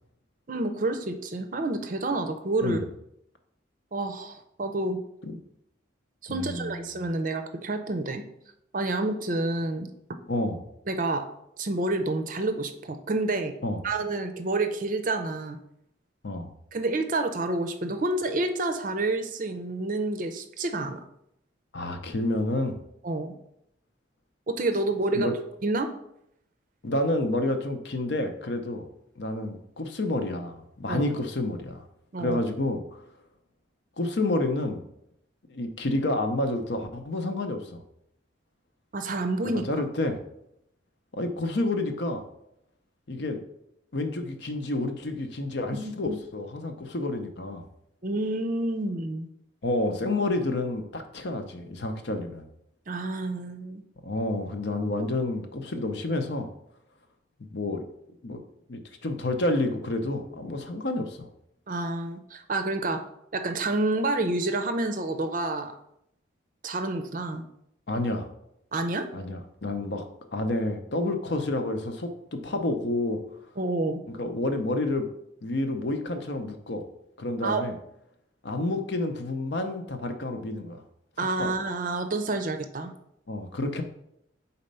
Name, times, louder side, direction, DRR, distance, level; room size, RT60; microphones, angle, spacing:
voice 1, 0.5-2.8 3.9-5.0 6.2-8.2 8.7-10.2 10.9-11.3 11.6-13.5 13.8-15.6 16.7-21.0 23.0-23.3 24.5-25.3 25.6-25.9 30.9-31.0 32.1-32.4 38.9-39.6 45.8-46.2 48.0-49.3 52.9-53.8 61.7-63.0 63.3-65.7 66.6-67.4 68.7-69.1 73.6-74.0 77.4-77.6 81.2-82.9, right 2 dB, 45° right, 8 dB, 0.5 m, -29 dB
voice 2, 6.3-6.8 10.3-10.6 13.6-13.8 16.2-16.5 21.7-22.8 25.1-25.3 26.8-28.9 29.2-31.8 32.2-32.8 34.0-34.8 35.5-37.8 39.4-40.2 41.1-42.2 43.1-43.4 43.9-47.6 49.6-52.5 54.0-56.5 57.4-57.8 58.2-58.4 58.7-61.3 67.9-68.3 69.1-70.1 70.3-73.2 74.1-75.1 75.4-76.8 77.2-77.8 78.4-80.8 81.4-81.5 83.3-83.8, left 2 dB, 60° left, 6 dB, 0.7 m, -29 dB
4.3 x 4.1 x 5.3 m, 0.77 s
head